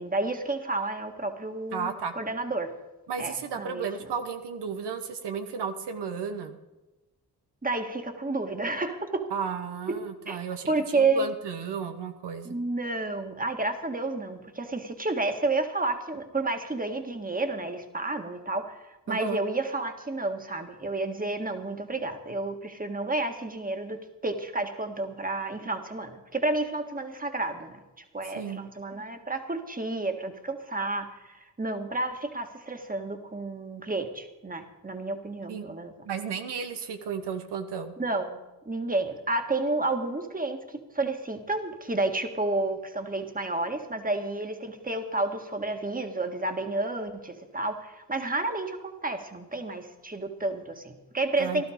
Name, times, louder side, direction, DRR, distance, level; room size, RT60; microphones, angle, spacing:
voice 1, 0.0-2.7 3.2-3.9 7.6-9.3 9.9-10.4 10.7-11.3 12.4-35.9 38.0-51.7, right 2 dB, 20° right, 6 dB, 1.7 m, -31 dB
voice 2, 1.7-2.1 3.1-6.6 9.3-12.5 19.1-19.4 28.3-28.6 35.5-35.7 36.0-37.9 51.4-51.7, right 6 dB, 90° right, 7 dB, 1.1 m, -34 dB
16.0 x 12.0 x 5.0 m, 1.0 s
cardioid pair, 60°, 40 cm